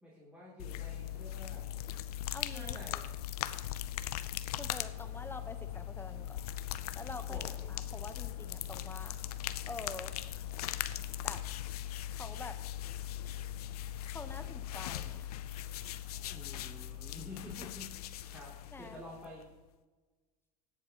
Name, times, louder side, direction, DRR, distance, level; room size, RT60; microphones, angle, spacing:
voice 1, 0.0-1.7 2.4-3.0 7.3-7.5 16.3-19.4, left 1 dB, 5° right, -7 dB, 2.8 m, -49 dB
sound 1, 0.6-19.5, left 12 dB, 85° left, 0.5 m, -40 dB
voice 2, 2.3-2.8 4.6-6.4 6.9-7.4 7.7-9.2 9.7-10.1 11.2-11.4 12.1-12.6 14.0-15.4 18.7-19.0, left 3 dB, 10° left, 9 dB, 0.9 m, -46 dB
17.0 x 7.2 x 2.9 m, 1.2 s
supercardioid pair, 105°, 19 cm